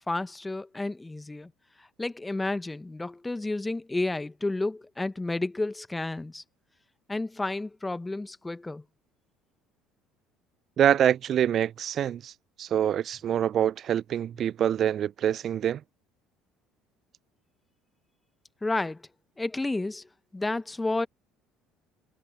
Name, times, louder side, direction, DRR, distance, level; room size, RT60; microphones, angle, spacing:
voice 1, 0.1-1.5 1.8-6.4 7.1-8.8 18.6-19.0 19.4-20.1 20.3-21.1, left 2 dB, 15° left, 1.3 m, -31 dB
voice 2, 10.8-12.3 12.6-15.8, right 10 dB, 45° right, 0.3 m, -25 dB
figure-of-eight pair, 60°, 0 cm